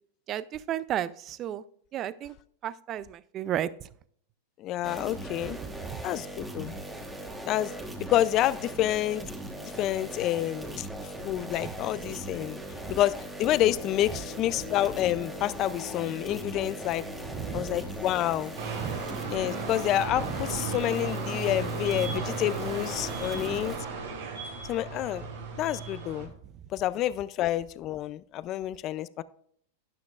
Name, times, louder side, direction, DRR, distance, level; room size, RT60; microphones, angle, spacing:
voice 1, 0.3-1.6 1.9-2.3 2.6-3.9 5.9-6.0 11.6-11.7 12.8-13.0 17.3-17.8 18.8-19.0 20.2-20.4, right 11 dB, 30° right, 18 dB, 0.4 m, -33 dB
voice 2, 4.6-5.6 6.0-6.7 7.4-7.7 8.1-9.2 9.6-10.9 11.2-12.6 12.9-13.1 13.4-17.0 17.5-18.5 19.3-23.7 24.7-25.2 25.6-26.3 26.7-29.2, left 13 dB, 35° left, 16 dB, 0.4 m, -28 dB
sound 1, 4.8-23.8, right 1 dB, 5° right, 1.2 m, -39 dB
sound 2, 11.2-13.1 13.7-23.3, left 4 dB, 75° left, 2.0 m, -47 dB
sound 3, 18.6-26.3, right 5 dB, 80° right, 3.5 m, -35 dB
12.5 x 9.8 x 2.4 m, 0.62 s
supercardioid pair, 145°, 0 cm